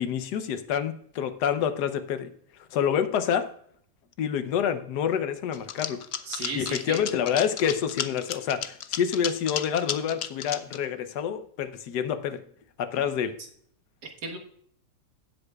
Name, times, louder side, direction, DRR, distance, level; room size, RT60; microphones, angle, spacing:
voice 1, 0.0-2.3 2.7-3.5 4.2-6.0 6.6-12.4 12.8-13.3, left 8 dB, 85° left, 11 dB, 1.4 m, -27 dB
sound 1, 5.5-10.8, left 9 dB, 65° left, 0.6 m, -33 dB
voice 2, 6.3-7.0 14.0-14.4, right 3 dB, 85° right, 2 dB, 2.0 m, -35 dB
16.5 x 8.0 x 2.3 m, 0.64 s
omnidirectional pair, 1.7 m